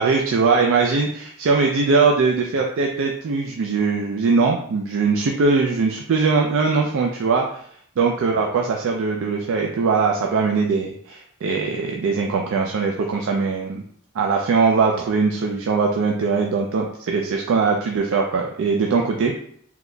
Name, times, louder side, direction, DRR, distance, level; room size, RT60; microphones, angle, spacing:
voice 1, 0.0-7.6 8.0-13.8 14.1-19.3, right 4 dB, 60° right, 1 dB, 0.4 m, -21 dB
3.8 x 2.9 x 2.2 m, 0.64 s
head